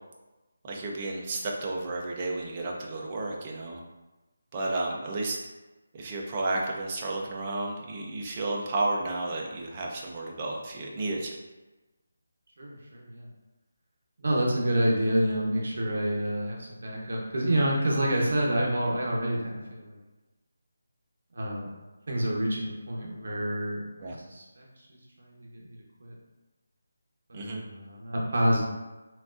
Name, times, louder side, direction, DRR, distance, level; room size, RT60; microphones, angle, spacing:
voice 1, 0.7-3.8 4.5-5.4 5.9-11.3 24.0-24.2 27.3-27.6, right 2 dB, 20° right, -1 dB, 0.4 m, -32 dB
voice 2, 12.6-13.3 14.2-20.0 21.3-21.7 22.1-24.7 25.2-26.1 27.3-28.6, right 1 dB, 50° right, -3 dB, 0.9 m, -28 dB
5.8 x 2.4 x 2.5 m, 1.1 s
figure-of-eight pair, 175°, 0 cm